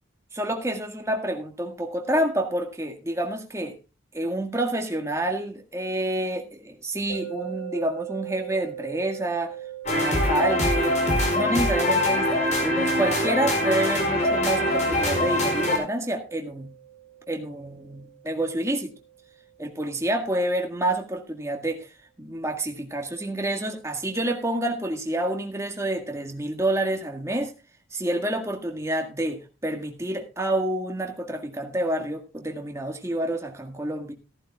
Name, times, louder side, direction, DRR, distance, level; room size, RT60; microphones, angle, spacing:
voice 1, 0.3-3.8 4.1-9.6 9.9-11.0 11.3-16.7 17.3-18.9 19.6-21.9 22.2-27.5 27.9-34.1, right 1 dB, 15° right, 3 dB, 1.8 m, -28 dB
sound 1, 7.1-20.2, right 12 dB, 50° left, 7.4 m, -41 dB
sound 2, 9.9-15.8, left 1 dB, 35° left, 4.7 m, -23 dB
15.0 x 14.5 x 2.4 m, 0.28 s
head